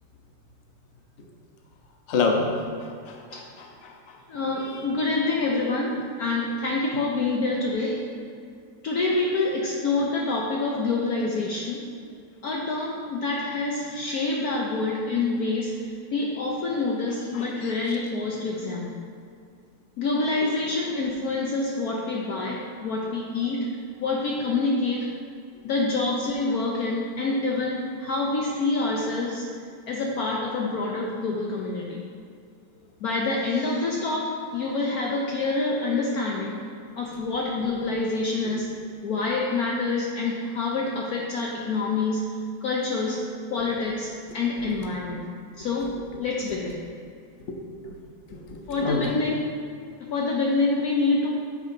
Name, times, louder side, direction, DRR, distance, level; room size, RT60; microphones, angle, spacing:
voice 1, 2.1-2.7 3.1-4.2 4.6-4.8 17.3-17.7 38.4-38.5 44.8-44.9 47.8-48.0 48.3-49.1, left 4 dB, 50° left, 1 dB, 1.0 m, -29 dB
voice 2, 4.3-8.0 8.8-11.8 12.4-19.0 20.0-23.7 24.0-25.1 25.6-29.5 29.9-32.1 33.0-36.6 37.0-38.7 39.0-42.2 42.6-43.2 43.5-45.2 45.6-46.8 48.7-49.4 50.0-51.3, left 3 dB, 65° left, -2 dB, 1.1 m, -27 dB
9.4 x 7.3 x 2.7 m, 2.3 s
omnidirectional pair, 2.0 m